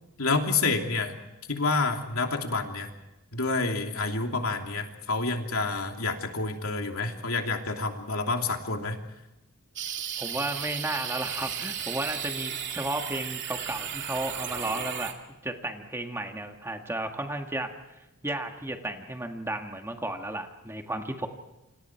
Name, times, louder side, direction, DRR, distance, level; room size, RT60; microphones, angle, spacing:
voice 1, 0.2-1.1 1.5-2.9 3.3-9.0, left 3 dB, 70° left, 3 dB, 3.0 m, -28 dB
sound 1, 9.8-15.1, right 8 dB, 55° right, 2.6 m, -34 dB
voice 2, 10.2-15.1 15.4-17.7 18.2-21.3, right 1 dB, 10° right, 4 dB, 1.9 m, -33 dB
29.5 x 27.0 x 4.6 m, 0.97 s
head